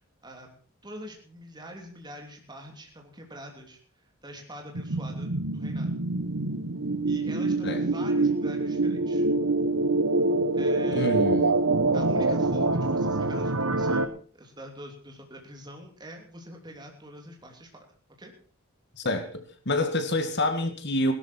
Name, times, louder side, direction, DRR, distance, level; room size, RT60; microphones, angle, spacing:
voice 1, 0.8-5.9 7.1-9.3 10.5-11.2 11.9-17.8 18.2-18.3, equal, 20° right, 1 dB, 3.2 m, -45 dB
sound 1, 4.7-14.1, right 2 dB, 75° right, 1.2 m, -25 dB
voice 2, 10.9-11.6 19.0-21.1, left 1 dB, 50° left, 7 dB, 2.0 m, -27 dB
17.5 x 12.5 x 4.5 m, 0.43 s
head